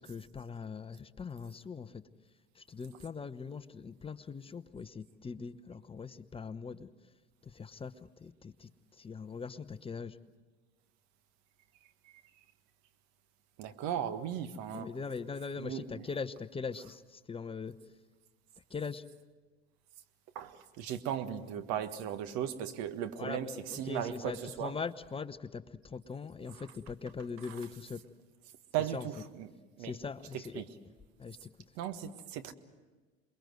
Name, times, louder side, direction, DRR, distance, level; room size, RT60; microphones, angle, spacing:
voice 1, 0.0-2.0 2.6-6.9 7.5-7.9 8.2-8.7 9.0-10.2 14.7-17.7 18.7-19.0 23.2-28.0 28.9-29.1 29.8-30.6 31.2-31.5, left 5 dB, 20° left, 11 dB, 0.9 m, -41 dB
voice 2, 13.6-14.9 15.6-16.0 20.3-24.7 27.5-27.6 28.7-29.5 29.8-29.9 30.5-30.7 31.8-32.5, right 10 dB, 60° right, 10 dB, 1.6 m, -37 dB
28.0 x 21.5 x 7.9 m, 1.3 s
hypercardioid pair, 75°, 31 cm